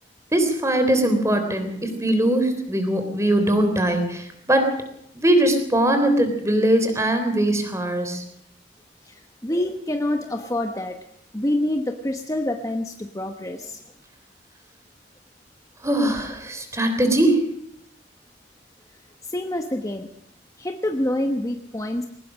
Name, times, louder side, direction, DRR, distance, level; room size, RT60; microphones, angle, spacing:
voice 1, 0.3-4.8 5.1-8.2 15.8-17.5, right 1 dB, 15° right, 7 dB, 3.4 m, -21 dB
voice 2, 9.0-11.0 11.3-13.8 19.2-20.1 20.6-22.1, left 1 dB, 20° left, 6 dB, 1.1 m, -27 dB
21.5 x 19.0 x 6.3 m, 0.72 s
head